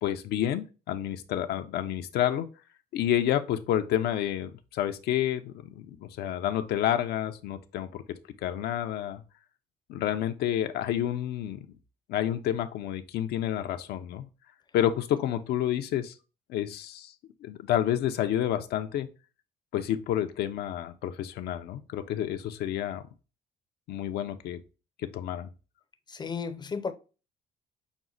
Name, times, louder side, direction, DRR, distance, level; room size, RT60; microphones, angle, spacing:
voice 1, 0.0-2.5 2.9-8.0 8.4-9.2 9.9-11.6 12.1-14.3 14.7-16.1 16.5-17.1 17.4-19.1 19.7-23.0 23.9-24.6 25.0-25.5, left 11 dB, 70° left, 0.6 m, -29 dB
voice 2, 26.1-26.9, left 5 dB, 25° left, 0.5 m, -33 dB
6.0 x 2.1 x 3.8 m
cardioid pair, 110°, 17 cm